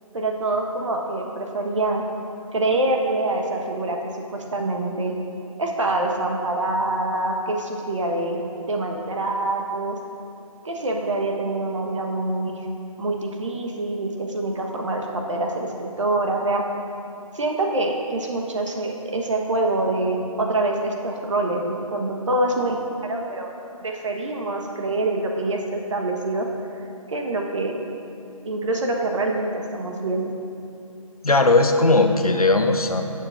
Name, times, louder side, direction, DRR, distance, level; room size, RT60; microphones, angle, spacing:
voice 1, 0.1-2.0 2.5-4.0 4.3-5.1 5.6-8.4 8.7-10.0 10.6-12.6 13.0-16.6 17.3-22.8 23.1-23.5 23.8-26.5 27.1-27.8 28.4-30.3, right 2 dB, 55° right, 1 dB, 1.3 m, -25 dB
voice 2, 31.2-33.0, left 2 dB, 90° left, 5 dB, 0.9 m, -18 dB
16.5 x 6.9 x 2.6 m, 2.5 s
figure-of-eight pair, 150°, 18 cm